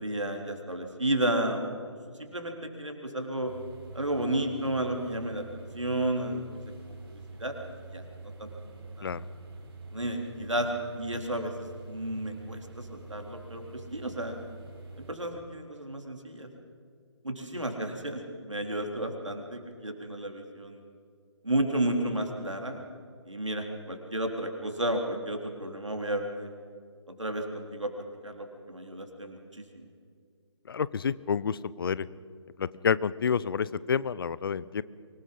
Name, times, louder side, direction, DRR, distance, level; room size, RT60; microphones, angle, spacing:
voice 1, 0.0-3.5 3.9-6.4 7.4-7.5 7.9-8.0 8.4-8.5 9.0-9.1 9.9-10.7 10.9-14.4 15.0-16.5 17.2-20.8 21.4-22.8 23.3-26.5 27.2-27.9 28.2-29.9, right 1 dB, 90° right, 3 dB, 3.8 m, -32 dB
sound 1, 3.5-15.1, right 3 dB, 50° right, 4.9 m, -46 dB
voice 2, 30.7-32.1 32.6-34.8, left 6 dB, 50° left, 19 dB, 0.7 m, -29 dB
24.5 x 20.5 x 5.5 m, 2.2 s
figure-of-eight pair, 145°, 15 cm